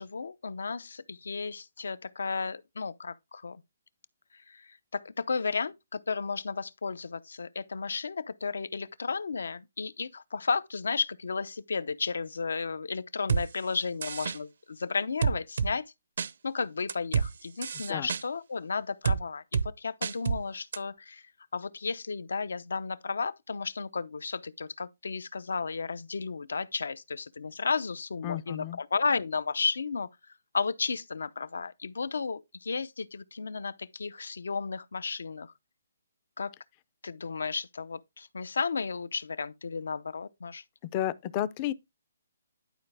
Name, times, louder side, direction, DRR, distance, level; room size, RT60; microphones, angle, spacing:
voice 1, 0.0-3.6 4.3-15.9 16.4-21.2 21.5-30.1 30.5-35.5 36.4-36.5 37.0-40.6, left 4 dB, 80° left, 0.7 m, -33 dB
sound 1, 13.3-13.4 14.0-14.4 15.2-15.7 16.2-16.3 16.9-17.3 17.6-18.2 19.1-19.2 19.5-19.7 20.0-20.4 20.7-20.8, right 6 dB, 55° right, 0.6 m, -28 dB
voice 2, 28.2-28.8 40.9-41.7, left 12 dB, 20° left, 0.4 m, -31 dB
11.0 x 4.9 x 3.4 m
hypercardioid pair, 175°, 0 cm